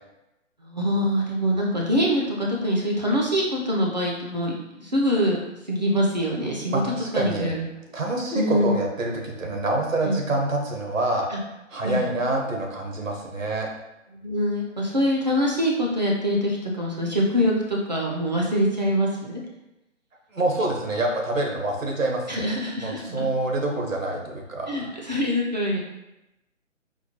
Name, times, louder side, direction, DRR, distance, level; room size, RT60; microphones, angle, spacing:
voice 1, 0.6-4.5 4.8-5.4 5.7-6.8 7.1-7.7 8.4-8.8 10.0-10.2 11.3-11.4 11.8-12.0 14.1-19.4 22.3-23.3 24.7-25.8, equal, 35° right, -3 dB, 0.4 m, -24 dB
voice 2, 6.7-7.6 7.9-11.3 11.7-13.7 20.3-22.5 22.8-24.9, right 2 dB, 85° right, 1 dB, 1.0 m, -26 dB
4.3 x 2.1 x 2.8 m, 0.94 s
figure-of-eight pair, 145°, 38 cm